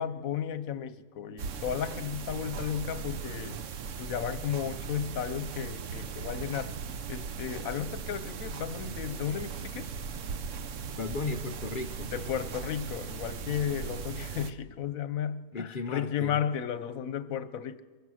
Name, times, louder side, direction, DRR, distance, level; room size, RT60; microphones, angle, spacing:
voice 1, 0.0-3.6 4.0-6.8 7.1-9.9 12.1-17.8, left 9 dB, 85° left, 1.3 m, -34 dB
sound 1, 1.4-14.5, right 6 dB, 70° right, 1.1 m, -38 dB
voice 2, 11.0-12.1 15.5-16.4, left 3 dB, 45° left, 0.9 m, -35 dB
23.5 x 23.0 x 6.4 m
omnidirectional pair, 1.4 m